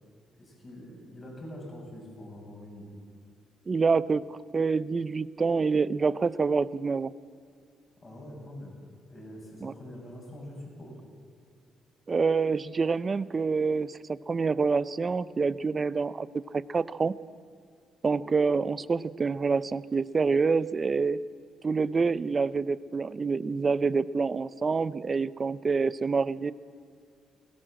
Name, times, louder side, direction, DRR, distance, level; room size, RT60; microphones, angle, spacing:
voice 1, 0.4-3.0 8.0-8.8 9.1-11.0, left 1 dB, 35° left, 0 dB, 7.1 m, -44 dB
voice 2, 3.7-7.1 9.6-9.7 12.1-16.3 16.5-17.1 18.0-21.2 21.6-26.5, right 4 dB, 35° right, 17 dB, 0.6 m, -27 dB
21.0 x 17.0 x 7.7 m, 2.2 s
cardioid pair, 90°, 0 cm